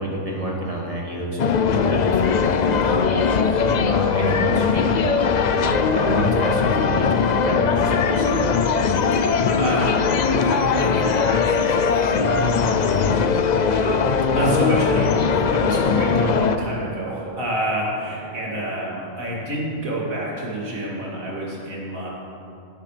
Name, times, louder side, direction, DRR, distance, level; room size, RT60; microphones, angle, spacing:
voice 1, 0.0-5.2 5.6-8.5, right 1 dB, 25° right, -3 dB, 1.9 m, -29 dB
sound 1, 1.4-16.6, left 5 dB, 70° left, 0.4 m, -20 dB
voice 2, 9.1-22.1, right 1 dB, 85° right, -5 dB, 3.1 m, -28 dB
17.5 x 10.0 x 3.4 m, 2.6 s
omnidirectional pair, 1.4 m